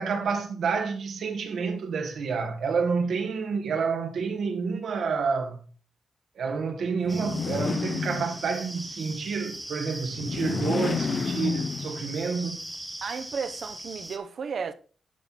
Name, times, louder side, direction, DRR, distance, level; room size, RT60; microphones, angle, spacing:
voice 1, 0.0-5.6 6.4-12.6, right 5 dB, 75° right, 1.7 m, -29 dB
sound 1, 7.0-8.8 10.1-12.3, left 5 dB, 45° left, 0.5 m, -30 dB
sound 2, 7.1-14.2, right 1 dB, 5° right, 0.9 m, -40 dB
voice 2, 13.0-14.7, right 6 dB, 55° right, 0.8 m, -33 dB
11.5 x 4.4 x 4.2 m
wide cardioid pair, 155°, 0 cm